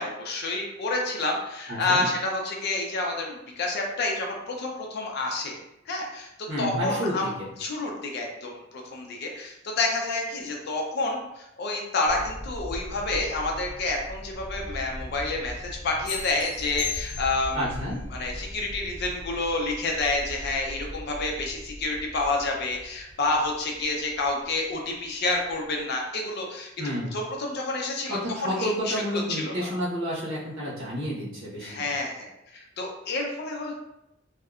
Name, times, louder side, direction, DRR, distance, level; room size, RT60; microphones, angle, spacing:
voice 1, 0.0-5.6 5.9-7.3 7.6-17.7 18.1-26.7 27.1-29.7 31.6-33.7, left 2 dB, 55° left, 1 dB, 0.5 m, -29 dB
voice 2, 1.7-2.1 6.5-7.5 17.5-18.0 26.8-27.2 28.1-31.8, equal, 85° right, -7 dB, 1.1 m, -30 dB
sound 1, 12.0-26.1 26.5-26.6 26.8-27.0 27.9-28.4 28.7-28.8 29.1-29.2, equal, 20° right, 1.3 m, -40 dB
sound 2, 16.0-17.7, left 8 dB, 5° left, 0.6 m, -36 dB
2.7 x 2.2 x 2.4 m, 0.86 s
head